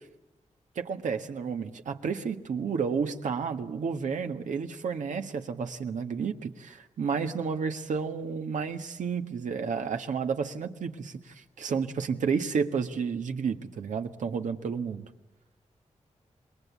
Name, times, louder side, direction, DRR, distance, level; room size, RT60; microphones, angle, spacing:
voice 1, 0.7-15.1, right 6 dB, 85° right, 6 dB, 1.6 m, -31 dB
27.5 x 21.0 x 8.4 m, 1.0 s
cardioid pair, 75°, 13 cm